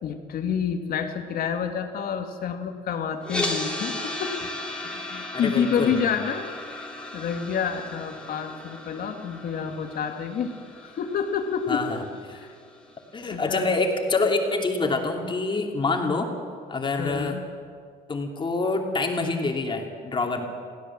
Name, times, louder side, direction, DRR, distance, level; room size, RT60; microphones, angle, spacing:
voice 1, 0.0-4.5 4.8-6.9 7.1-11.8 12.3-12.5 13.3-13.7 17.0-17.4, left 7 dB, 60° left, 5 dB, 2.1 m, -29 dB
sound 1, 3.2-13.3, left 2 dB, 5° left, 3.4 m, -36 dB
voice 2, 5.3-5.9 11.7-12.4 13.1-16.3 16.7-17.4 18.1-20.5, left 3 dB, 30° left, 2 dB, 2.9 m, -26 dB
23.0 x 16.0 x 7.4 m, 2.1 s
cardioid pair, 110°, 17 cm